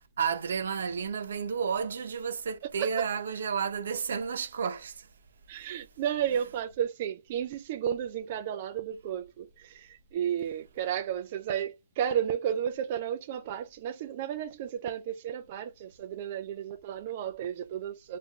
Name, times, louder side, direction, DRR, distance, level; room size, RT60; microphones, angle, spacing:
voice 1, 0.2-5.1, right 6 dB, 70° right, 0.7 m, -31 dB
voice 2, 5.5-18.2, right 9 dB, 30° right, 0.3 m, -33 dB
3.7 x 2.5 x 2.9 m
hypercardioid pair, 175°, 0 cm